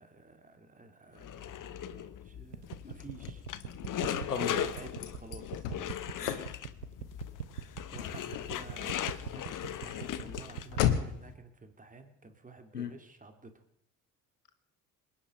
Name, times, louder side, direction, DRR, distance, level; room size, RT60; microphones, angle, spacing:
voice 1, 0.0-3.4 4.1-5.7 7.9-13.6, right 3 dB, 15° right, 7 dB, 2.6 m, -52 dB
sound 1, 1.2-10.9, left 10 dB, 45° left, 1.2 m, -39 dB
sound 2, 2.5-11.1, right 10 dB, 85° right, 1.0 m, -41 dB
Car / Slam, 2.7-11.3, left 10 dB, 70° left, 1.7 m, -38 dB
voice 2, 3.8-4.7 6.1-6.6 7.5-7.8 12.7-12.9, left 6 dB, 90° left, 9 dB, 1.6 m, -38 dB
26.5 x 10.0 x 5.3 m, 0.73 s
figure-of-eight pair, 55°, 46 cm